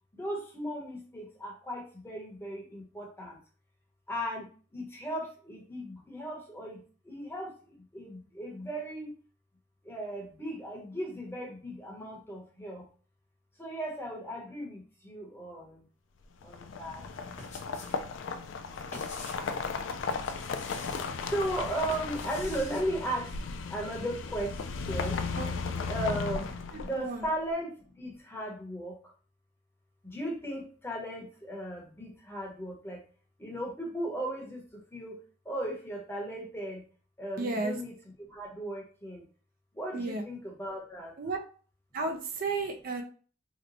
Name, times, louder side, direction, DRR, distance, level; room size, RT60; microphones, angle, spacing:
voice 1, 0.1-3.4 4.1-9.1 9.8-12.8 13.6-15.9 16.4-17.1 18.9-19.0 21.2-23.4 23.7-25.3 25.9-26.5 26.8-29.1 30.0-33.0 33.4-35.2 35.4-36.8 37.2-39.2 39.7-41.1, right 1 dB, 15° left, -1 dB, 0.9 m, -36 dB
sound 1, 16.4-27.2, left 5 dB, 80° left, 0.4 m, -35 dB
sound 2, 17.1-18.0 18.3-19.5 20.1-21.1 21.6-22.8, left 3 dB, 40° left, 0.9 m, -47 dB
voice 2, 26.7-27.3 37.4-37.7 39.9-40.2 41.2-41.4 41.9-43.0, right 3 dB, 50° right, 3 dB, 0.5 m, -33 dB
2.9 x 2.1 x 3.9 m, 0.40 s
head